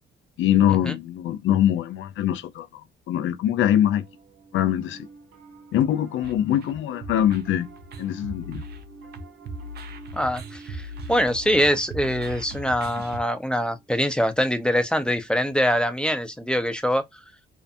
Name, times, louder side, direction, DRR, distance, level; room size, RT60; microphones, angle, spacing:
voice 1, 0.4-2.7 3.1-4.0 4.5-5.1 5.7-7.7 8.0-8.6, left 11 dB, 75° left, 0.5 m, -23 dB
Piano, 3.8-15.2, right 4 dB, 80° right, 1.2 m, -49 dB
sound 1, 6.2-13.2, right 1 dB, 55° right, 0.6 m, -38 dB
voice 2, 10.1-17.0, equal, 5° left, 0.5 m, -24 dB
2.5 x 2.1 x 2.6 m
cardioid pair, 90°, 20 cm